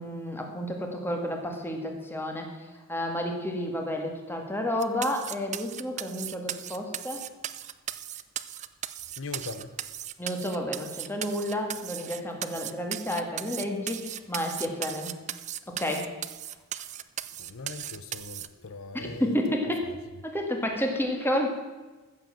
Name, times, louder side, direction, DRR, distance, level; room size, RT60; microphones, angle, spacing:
voice 1, 0.0-2.5 2.9-7.2 10.2-15.1 15.7-16.2 18.9-19.9 20.2-21.5, left 1 dB, 10° left, 1.9 m, -31 dB
sound 1, 4.8-18.5, right 11 dB, 35° right, 0.5 m, -37 dB
voice 2, 9.2-9.8 17.4-19.4 19.8-19.9, left 3 dB, 70° left, 0.8 m, -40 dB
14.5 x 7.4 x 7.5 m
head